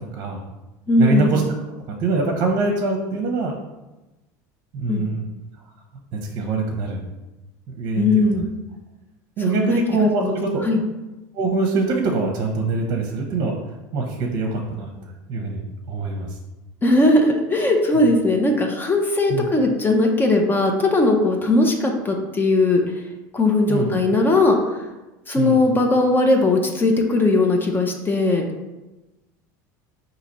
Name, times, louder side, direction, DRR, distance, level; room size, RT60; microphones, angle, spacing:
voice 1, 0.1-0.5 1.0-1.4 2.0-3.5 4.7-5.2 6.1-7.0 7.7-8.4 9.4-10.6 11.3-13.6 13.9-14.9 15.3-16.4 19.3-19.5 23.7-23.9 25.4-25.6, right 3 dB, 55° right, 1 dB, 0.7 m, -24 dB
voice 2, 0.9-1.4 4.9-5.1 8.0-8.4 9.5-9.8 10.2-10.4 10.6-10.8 16.8-22.8 23.3-24.9 25.3-28.5, left 2 dB, 20° left, 2 dB, 0.6 m, -19 dB
4.1 x 2.8 x 4.1 m, 1.1 s
supercardioid pair, 100°, 10 cm